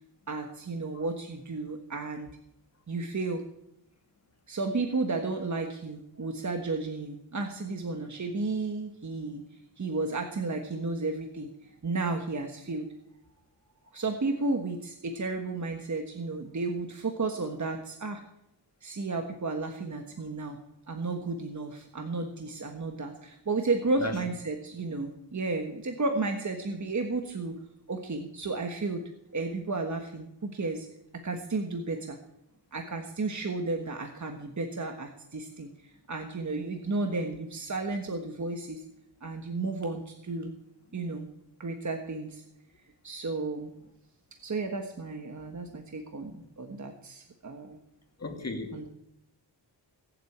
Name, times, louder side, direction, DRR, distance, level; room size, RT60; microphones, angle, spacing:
voice 1, 0.3-2.3 2.9-3.4 4.5-9.4 9.8-12.9 13.9-18.2 18.8-20.6 20.9-27.6 27.9-29.0 29.3-30.9 31.2-32.2 32.7-38.8 39.2-40.5 40.9-41.3 41.6-42.4 43.0-43.7 44.4-47.8 48.7-48.9, right 3 dB, 40° right, 4 dB, 1.4 m, -33 dB
voice 2, 48.2-48.9, left 2 dB, 35° left, 4 dB, 2.5 m, -35 dB
20.0 x 7.7 x 8.6 m, 0.81 s
wide cardioid pair, 130°, 43 cm